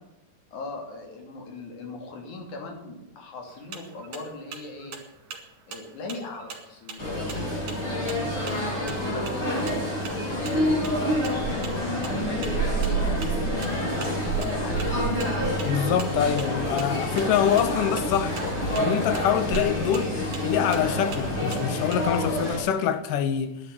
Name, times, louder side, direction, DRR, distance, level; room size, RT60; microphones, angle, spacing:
voice 1, 0.5-5.0 5.7-7.5 7.8-14.9 19.7-19.9, left 3 dB, 65° left, 4.2 m, -38 dB
sound 1, 3.5-22.1, right 5 dB, 70° right, 3.5 m, -44 dB
sound 2, 7.0-22.6, equal, 30° left, 7.4 m, -27 dB
voice 2, 15.6-18.4 18.8-20.1 20.4-23.6, left 9 dB, 90° left, 2.6 m, -25 dB
11.0 x 10.0 x 9.9 m
omnidirectional pair, 3.7 m